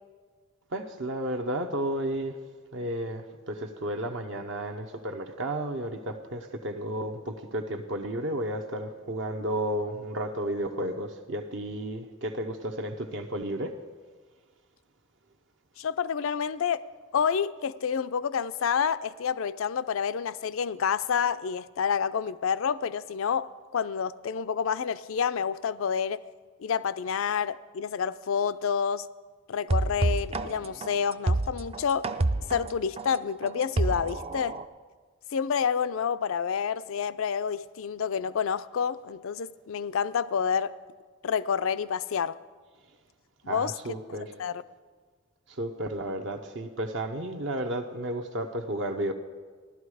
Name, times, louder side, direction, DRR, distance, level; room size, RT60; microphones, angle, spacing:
voice 1, 0.7-2.4 2.7-13.8 43.5-44.3 45.6-49.1, right 1 dB, 60° right, 4 dB, 0.8 m, -32 dB
voice 2, 15.8-16.9 17.1-26.2 26.6-29.1 29.5-32.1 32.5-34.6 35.3-40.7 41.2-42.4 43.4-44.6, left 7 dB, 75° left, 15 dB, 0.4 m, -29 dB
resonoid mgreel, 29.7-34.6, right 2 dB, 30° right, 0.4 m, -28 dB
16.0 x 12.0 x 4.8 m, 1.5 s
head